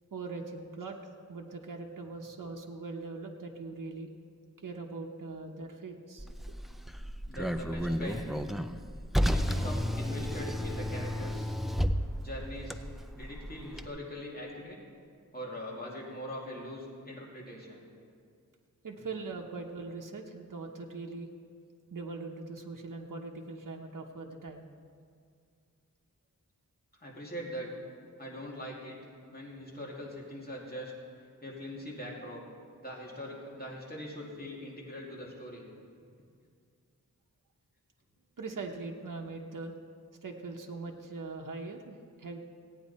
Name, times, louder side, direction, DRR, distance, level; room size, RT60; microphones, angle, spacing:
voice 1, 0.1-1.0 1.3-4.1 4.6-6.3 18.8-21.3 21.9-24.7 38.4-39.7 40.2-42.4, right 3 dB, 70° right, 1 dB, 0.9 m, -41 dB
Car, 6.2-13.9, equal, ahead, 0.4 m, -32 dB
voice 2, 7.3-8.3 9.2-11.6 12.2-12.8 13.1-14.8 15.3-17.9 27.0-27.7 28.2-29.0 29.3-30.9 31.4-32.4 32.8-35.7, equal, 30° left, -4 dB, 2.5 m, -42 dB
16.5 x 9.1 x 4.2 m, 2.3 s
wide cardioid pair, 80°, 33 cm